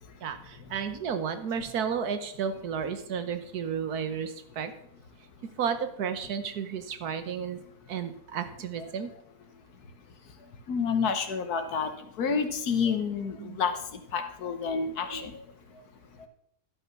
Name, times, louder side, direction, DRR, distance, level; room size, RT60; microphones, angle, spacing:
voice 1, 0.2-4.7 5.6-7.6 7.9-9.1 13.4-13.6 15.1-15.2, right 7 dB, 85° right, 9 dB, 1.5 m, -32 dB
voice 2, 10.7-11.9 12.2-13.7 14.1-15.4, left 6 dB, 85° left, 8 dB, 1.6 m, -29 dB
11.5 x 5.7 x 6.0 m, 0.73 s
omnidirectional pair, 1.6 m